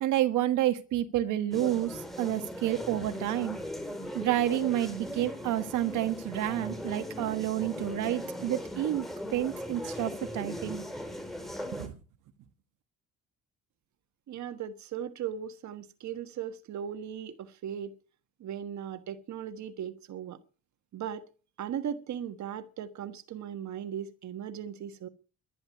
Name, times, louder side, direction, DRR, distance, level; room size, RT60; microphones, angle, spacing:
voice 1, 0.0-3.6 4.1-9.1 9.3-10.8 11.7-11.9, right 13 dB, 85° right, 1.5 m, -29 dB
sound 1, 1.5-11.9, equal, ahead, 4.0 m, -39 dB
voice 2, 14.3-17.9 18.4-20.4 20.9-21.2 21.6-25.1, right 9 dB, 70° right, 1.4 m, -38 dB
11.5 x 11.5 x 9.6 m
cardioid pair, 90°, 30 cm